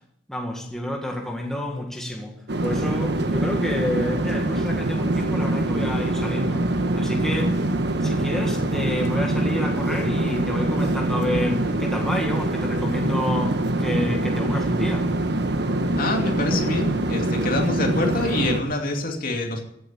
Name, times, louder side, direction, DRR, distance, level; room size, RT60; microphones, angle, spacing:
voice 1, 0.3-2.3 2.6-6.7 6.9-7.6 8.0-15.1, left 1 dB, 5° left, 1.8 m, -29 dB
sound 1, 2.5-18.6, right 1 dB, 60° right, 1.3 m, -24 dB
voice 2, 16.0-19.6, left 2 dB, 50° left, 2.6 m, -26 dB
15.5 x 7.8 x 8.2 m
head